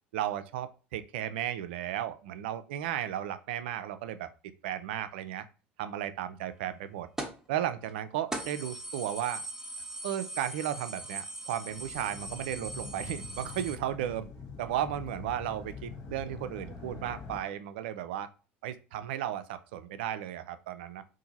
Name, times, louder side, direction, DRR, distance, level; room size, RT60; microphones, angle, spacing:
voice 1, 0.1-4.3 4.6-5.5 5.8-7.1 7.5-9.4 10.0-14.3 14.6-18.3 18.6-21.0, right 11 dB, 75° right, 12 dB, 0.4 m, -34 dB
sound 1, 7.2-7.5 7.9-8.0 8.3-13.8, right 2 dB, 10° right, 0.9 m, -40 dB
sound 2, 11.7-17.4, left 4 dB, 50° left, 1.0 m, -45 dB
2.8 x 2.5 x 4.0 m, 0.34 s
hypercardioid pair, 75°, 6 cm